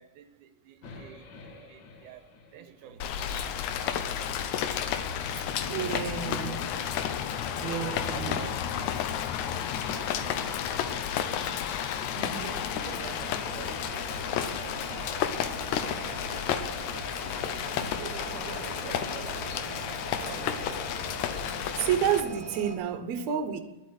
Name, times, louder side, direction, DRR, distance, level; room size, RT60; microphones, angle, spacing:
voice 1, 0.0-3.2 3.7-5.4 5.7-9.1 9.9-11.7 12.1-16.3 16.7-17.0 17.6-20.9, right 10 dB, 90° right, 2.2 m, -48 dB
sound 1, 0.8-5.0, left 2 dB, 55° left, 1.3 m, -51 dB
Rain, 3.0-22.2, left 9 dB, 75° left, 2.1 m, -32 dB
voice 2, 5.6-6.6 7.6-8.4 12.2-12.5 19.5-19.7 21.8-23.6, right 9 dB, 70° right, 2.1 m, -30 dB
sound 2, 12.7-22.8, right 3 dB, 35° right, 0.6 m, -43 dB
11.5 x 8.3 x 7.8 m
omnidirectional pair, 3.5 m